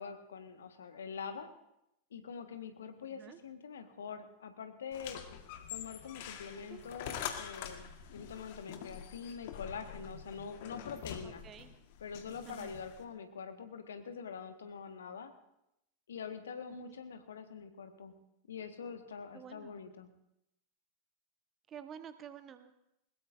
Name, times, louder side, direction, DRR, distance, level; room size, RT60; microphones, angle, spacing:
voice 1, 0.0-1.5 2.1-5.2 5.7-11.4 12.0-15.3 16.1-18.1 18.5-20.1, left 6 dB, 65° left, 8 dB, 1.4 m, -45 dB
voice 2, 3.1-3.4 6.7-6.8 11.2-11.7 12.4-12.7 16.7-17.0 19.3-19.7 21.7-22.7, right 8 dB, 30° right, 10 dB, 1.2 m, -50 dB
sound 1, 4.9-13.0, left 9 dB, 50° left, 1.5 m, -45 dB
20.5 x 20.5 x 2.6 m, 0.83 s
figure-of-eight pair, 90°, 0 cm